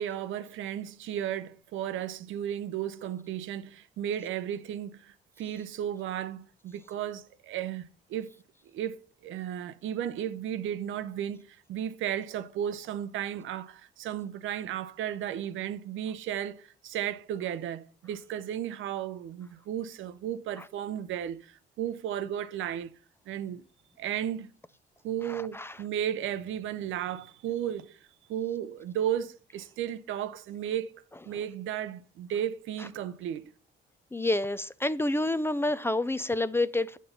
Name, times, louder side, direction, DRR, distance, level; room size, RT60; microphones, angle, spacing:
voice 1, 0.0-8.3 8.7-9.0 9.2-11.4 11.7-23.0 23.3-23.6 24.0-24.5 25.0-28.0 28.3-33.5, right 10 dB, 80° right, 0.7 m, -34 dB
voice 2, 25.3-25.8 34.1-37.0, left 2 dB, 10° left, 0.4 m, -28 dB
8.4 x 5.9 x 4.0 m
cardioid pair, 90°, 20 cm